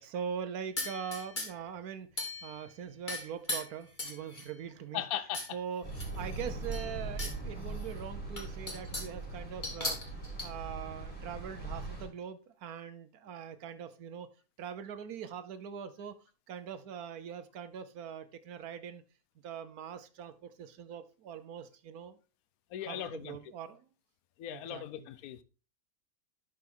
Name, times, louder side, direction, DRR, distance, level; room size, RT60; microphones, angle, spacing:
voice 1, 0.0-5.0 5.5-5.9 6.2-10.0 10.4-14.3 14.6-16.2 16.5-19.0 19.4-22.2 22.8-23.9 24.5-25.1, right 7 dB, 70° right, 1.2 m, -42 dB
sound 1, 0.8-1.7 2.2-2.7 3.1-4.6 5.3-5.5 5.9-7.4 7.8-7.9 8.4-9.2 9.6-10.5, left 2 dB, 30° left, 2.3 m, -38 dB
voice 2, 4.9-5.5 22.7-23.4 24.4-25.4, left 11 dB, 70° left, 1.0 m, -38 dB
sound 2, 5.8-12.0, right 3 dB, 5° left, 2.7 m, -40 dB
11.5 x 4.5 x 3.8 m
omnidirectional pair, 1.7 m